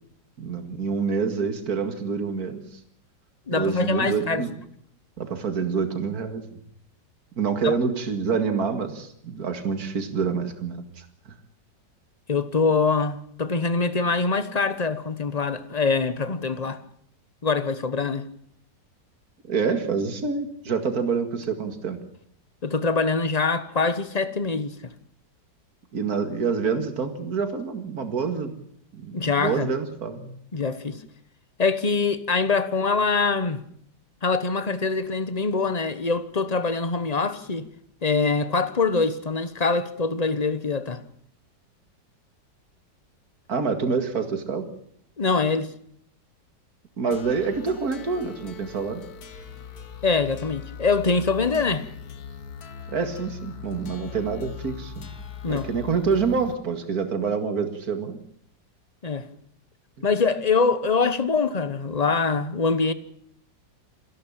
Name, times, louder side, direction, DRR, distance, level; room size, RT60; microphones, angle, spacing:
voice 1, 0.4-2.6 3.5-4.5 5.2-6.5 7.4-11.1 19.4-22.0 25.9-28.5 28.9-30.3 43.5-44.7 47.0-49.0 52.9-55.1 55.5-58.2 60.0-60.1, right 5 dB, 55° right, 2.5 m, -27 dB
voice 2, 3.5-4.4 7.6-7.7 12.3-16.8 17.4-18.2 22.6-24.7 29.1-29.7 30.5-31.0 31.6-33.6 34.2-37.7 38.0-41.0 45.2-45.7 50.0-51.8 55.4-55.7 59.0-59.3 60.0-62.9, left 4 dB, 30° left, 0.9 m, -24 dB
sound 1, 47.1-56.5, left 7 dB, 60° left, 1.8 m, -40 dB
27.5 x 11.0 x 8.8 m
omnidirectional pair, 1.9 m